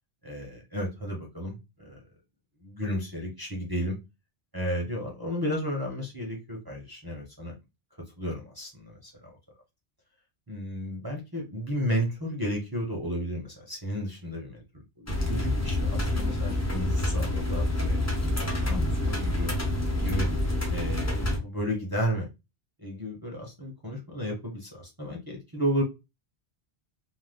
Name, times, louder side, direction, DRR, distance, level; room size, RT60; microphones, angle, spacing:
voice 1, 0.2-2.0 2.6-4.0 4.5-7.5 8.2-9.3 10.5-14.6 15.0-18.0 18.2-19.5 20.0-20.3 20.7-22.3 22.8-25.8, equal, 25° right, -2 dB, 0.5 m, -33 dB
sound 1, 15.1-21.4, left 1 dB, 20° left, 0.6 m, -27 dB
2.5 x 2.1 x 3.4 m, 0.25 s
omnidirectional pair, 1.1 m